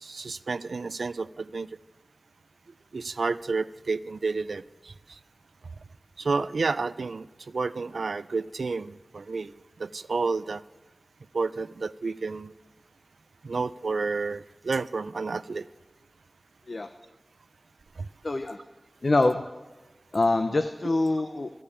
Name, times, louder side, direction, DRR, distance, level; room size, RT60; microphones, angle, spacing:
voice 1, 0.0-1.7 2.9-5.2 6.2-9.5 9.8-10.6 11.3-12.5 13.4-15.7 18.0-18.1, right 4 dB, 90° right, 17 dB, 0.3 m, -30 dB
voice 2, 18.2-18.6 19.0-19.4 20.1-21.5, left 2 dB, 55° left, 9 dB, 0.5 m, -24 dB
14.0 x 5.2 x 8.4 m, 1.1 s
wide cardioid pair, 60°, 0 cm